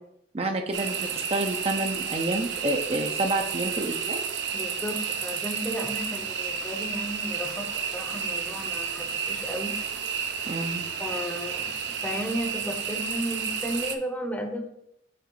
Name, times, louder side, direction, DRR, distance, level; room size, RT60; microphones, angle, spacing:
voice 1, 0.3-4.2 10.4-10.9, right 2 dB, 35° right, 4 dB, 0.5 m, -29 dB
sound 1, 0.7-14.0, right 6 dB, 80° right, 0.7 m, -31 dB
voice 2, 4.5-9.7 11.0-11.8 12.0-14.7, equal, 10° left, 4 dB, 0.8 m, -34 dB
7.6 x 3.1 x 4.5 m, 0.76 s
head